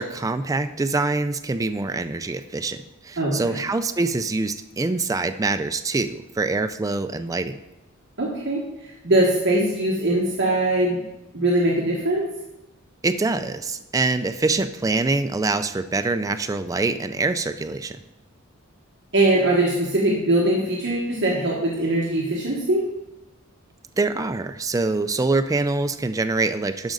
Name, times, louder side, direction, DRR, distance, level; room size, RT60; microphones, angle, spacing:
voice 1, 0.0-7.6 13.0-18.0 24.0-26.9, right 3 dB, 15° right, 9 dB, 0.3 m, -25 dB
voice 2, 3.2-3.6 8.2-11.0 11.3-12.3 19.1-22.9, right 1 dB, 60° right, -3 dB, 1.3 m, -21 dB
12.0 x 5.2 x 3.9 m, 0.99 s
head